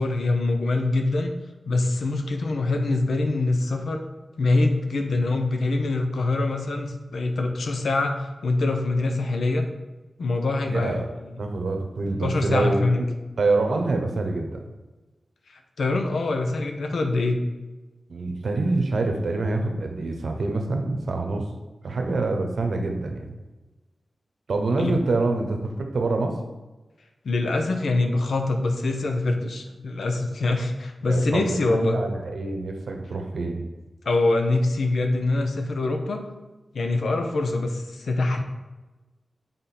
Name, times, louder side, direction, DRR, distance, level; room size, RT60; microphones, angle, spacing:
voice 1, 0.0-1.3 1.6-4.0 4.4-9.7 10.2-10.9 11.2-11.4 12.2-13.1 15.5-17.4 24.8-24.9 27.2-32.0 34.0-36.2 36.7-38.4, left 2 dB, 90° left, 5 dB, 0.7 m, -24 dB
voice 2, 10.6-11.1 11.4-13.1 13.4-14.6 18.1-21.5 21.8-23.3 24.5-26.4 31.1-33.6, right 3 dB, 80° right, 3 dB, 0.9 m, -26 dB
7.7 x 3.8 x 4.2 m, 1.1 s
wide cardioid pair, 135°, 0 cm